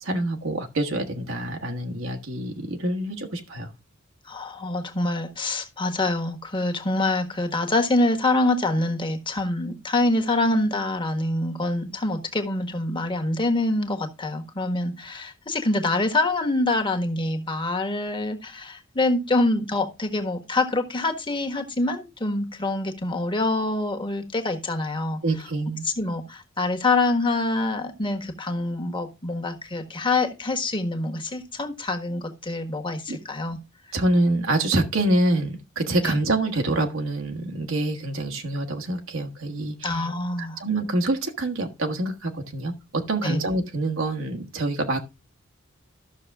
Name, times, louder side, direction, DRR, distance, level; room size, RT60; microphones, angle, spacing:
voice 1, 0.0-3.7 25.2-25.8 33.1-33.2 33.9-40.1 40.4-45.0, right 2 dB, 75° right, 1.4 m, -26 dB
voice 2, 4.3-25.2 25.8-33.6 36.0-36.2 39.8-40.6 43.2-43.4, left 2 dB, 25° left, 1.5 m, -25 dB
13.0 x 6.5 x 3.6 m
head